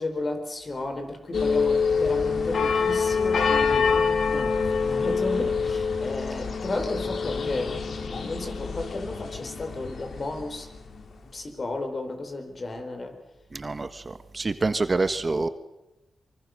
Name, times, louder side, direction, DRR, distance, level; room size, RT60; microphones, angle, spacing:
voice 1, 0.0-10.7 11.3-13.2, left 2 dB, 45° left, 7 dB, 4.5 m, -33 dB
sound 1, 1.3-10.5 10.9-11.0, left 5 dB, 65° left, 2.6 m, -26 dB
voice 2, 13.5-15.5, right 3 dB, 35° right, 11 dB, 1.4 m, -27 dB
24.5 x 24.0 x 6.6 m, 0.98 s
cardioid pair, 60°, 0 cm